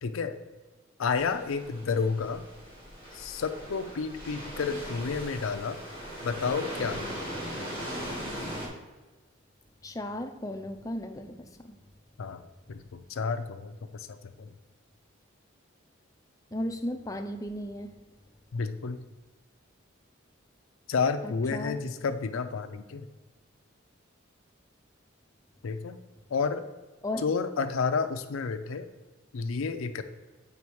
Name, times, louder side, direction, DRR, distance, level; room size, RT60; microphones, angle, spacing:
voice 1, 0.0-0.4 1.0-2.4 3.1-5.8 6.2-7.0 12.2-14.5 18.5-19.0 20.9-23.1 25.6-26.0 26.3-26.7 27.2-28.9 29.3-30.0, left 5 dB, 80° left, 8 dB, 0.5 m, -31 dB
sound 1, 1.1-8.7, equal, 25° right, 2.6 m, -39 dB
voice 2, 9.8-11.8 16.5-17.9 21.2-21.7 27.0-27.2, left 1 dB, 15° left, 6 dB, 0.5 m, -35 dB
7.0 x 5.2 x 4.6 m, 1.2 s
head